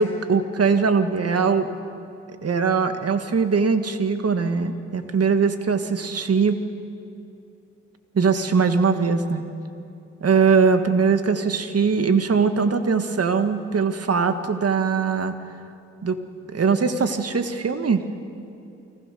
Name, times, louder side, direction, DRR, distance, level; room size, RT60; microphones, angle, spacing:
voice 1, 0.0-1.7 2.4-6.6 8.1-9.4 10.2-15.3 16.0-16.2 16.5-18.0, right 5 dB, 55° right, 8 dB, 1.9 m, -21 dB
29.0 x 18.0 x 6.9 m, 2.6 s
supercardioid pair, 45°, 29 cm